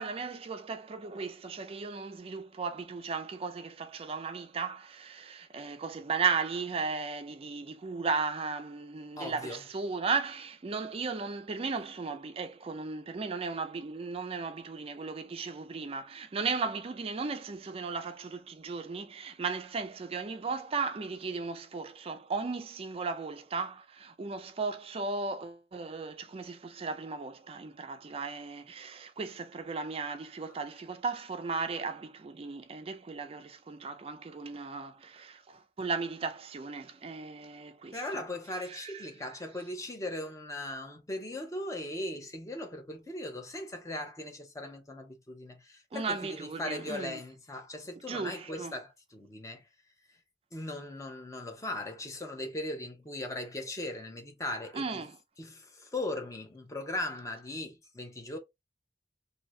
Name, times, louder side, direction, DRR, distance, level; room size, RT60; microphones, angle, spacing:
voice 1, 0.0-38.2 38.7-39.1 45.9-47.2 48.1-48.7 54.7-55.2, right 4 dB, 30° right, 0.4 m, -36 dB
voice 2, 9.2-9.6 37.9-49.6 50.5-54.8 55.4-58.4, left 1 dB, 20° left, 0.7 m, -38 dB
2.7 x 2.7 x 3.1 m
head